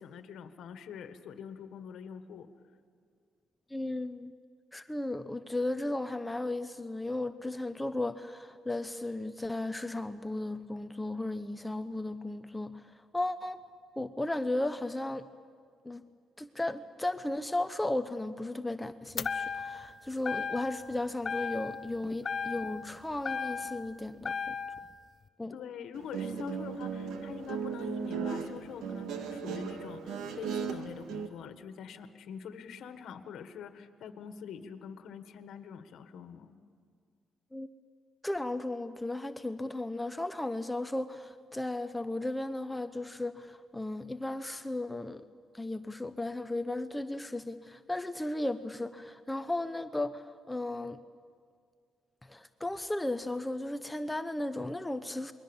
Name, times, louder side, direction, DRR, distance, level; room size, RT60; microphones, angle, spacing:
voice 1, 0.0-2.5 25.5-36.6, left 7 dB, 75° left, 8 dB, 1.7 m, -45 dB
voice 2, 3.7-4.3 4.7-13.6 14.0-15.3 15.8-16.1 16.4-24.6 25.4-25.6 37.5-37.7 38.2-45.2 45.5-51.0 52.2-55.3, left 2 dB, 10° left, 9 dB, 0.8 m, -35 dB
sound 1, 19.2-19.9 20.3-20.9 21.2-21.9 22.2-23.9 24.2-24.9, left 6 dB, 40° left, 0.8 m, -35 dB
Guitar, 25.9-31.3, right 6 dB, 85° right, 2.0 m, -36 dB
28.0 x 22.0 x 7.3 m, 2.1 s
cardioid pair, 90°, 0 cm